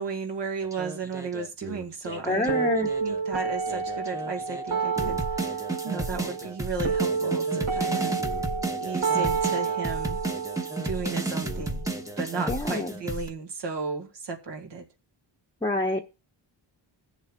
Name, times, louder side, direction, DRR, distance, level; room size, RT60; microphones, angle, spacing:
voice 1, 0.0-2.5 2.8-5.6 5.8-8.2 8.8-10.2 10.8-11.8 12.2-14.9, right 4 dB, 65° right, 1.9 m, -34 dB
sound 1, 0.6-3.2 3.7-13.3, right 2 dB, 5° right, 1.1 m, -33 dB
voice 2, 2.3-2.9 12.5-12.9 15.6-16.0, left 2 dB, 10° left, 1.0 m, -26 dB
sound 2, 2.5-12.5, right 5 dB, 85° right, 4.1 m, -30 dB
21.0 x 7.2 x 2.3 m
wide cardioid pair, 120°, 47 cm